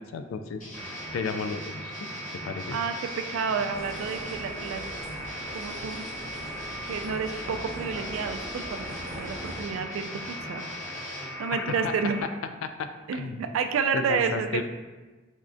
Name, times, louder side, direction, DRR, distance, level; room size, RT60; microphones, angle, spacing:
voice 1, 0.1-0.6 1.1-1.9 2.5-2.8 11.5-11.9 12.6-13.4 13.9-14.6, left 5 dB, 85° left, 9 dB, 0.3 m, -33 dB
sound 1, 0.6-11.3, left 1 dB, 40° left, 0.8 m, -43 dB
sound 2, 0.7-12.2, right 1 dB, 10° left, 1.3 m, -39 dB
voice 2, 2.7-4.8 5.5-6.1 6.9-10.1 10.4-10.6 11.4-12.3 13.1-14.6, right 6 dB, 85° right, 7 dB, 0.3 m, -30 dB
sound 3, 3.7-9.6, right 1 dB, 15° right, 0.9 m, -42 dB
3.6 x 3.2 x 2.5 m, 1.2 s
head